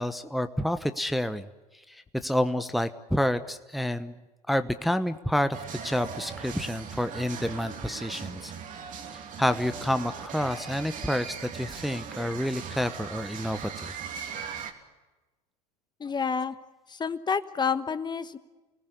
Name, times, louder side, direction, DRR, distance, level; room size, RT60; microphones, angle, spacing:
voice 1, 0.0-1.4 1.9-4.1 4.5-8.5 9.4-13.9, left 1 dB, ahead, 10 dB, 1.0 m, -29 dB
sound 1, 5.5-14.7, right 7 dB, 40° right, 2.9 m, -39 dB
voice 2, 16.0-16.5 16.9-18.4, left 6 dB, 20° left, 13 dB, 1.1 m, -29 dB
29.5 x 19.0 x 8.2 m, 1.2 s
figure-of-eight pair, 75°, 21 cm